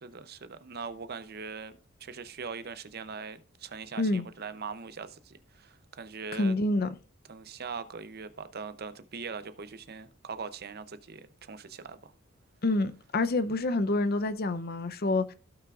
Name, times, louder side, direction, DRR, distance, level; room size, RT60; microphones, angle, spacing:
voice 1, 0.0-6.5 7.3-12.1, right 5 dB, 50° right, 0.7 m, -41 dB
voice 2, 6.3-6.9 12.6-15.3, left 2 dB, 50° left, 0.6 m, -27 dB
15.5 x 5.8 x 2.4 m
head